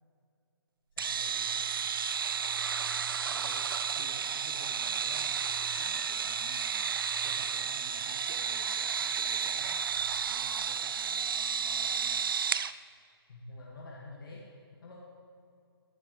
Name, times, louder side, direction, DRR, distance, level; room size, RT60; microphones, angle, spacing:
voice 1, 1.0-1.6 13.3-15.0, left 2 dB, 60° left, -3 dB, 1.9 m, -48 dB
sound 1, 1.0-12.7, right 7 dB, 60° right, 0.4 m, -32 dB
voice 2, 3.3-5.4 5.8-6.9 7.2-9.8 10.3-12.2, right 4 dB, 40° right, 6 dB, 1.1 m, -50 dB
Wind instrument woodwind instrument, 3.5-9.9, equal, ahead, 1.0 m, -55 dB
14.0 x 11.0 x 3.2 m, 2.4 s
figure-of-eight pair, 145°, 13 cm